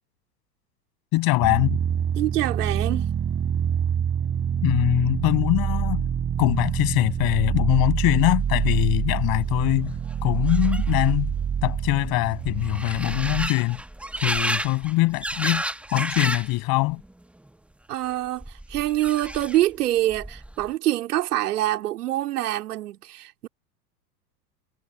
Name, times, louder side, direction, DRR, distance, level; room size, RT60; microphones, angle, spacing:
voice 1, 1.1-1.8 4.6-6.1 6.4-11.3 11.6-13.8 14.2-15.6 15.9-17.0, left 21 dB, 45° left, 7.6 m, -23 dB
sound 1, 1.4-13.5, right 8 dB, 25° right, 4.8 m, -26 dB
voice 2, 2.2-3.1 17.9-23.5, right 15 dB, 70° right, 4.0 m, -25 dB
sound 2, 9.0-9.1 9.3-16.6 16.9-17.5 18.4-19.8 20.1-20.7, right 1 dB, 5° right, 1.3 m, -32 dB
hypercardioid pair, 95°, 49 cm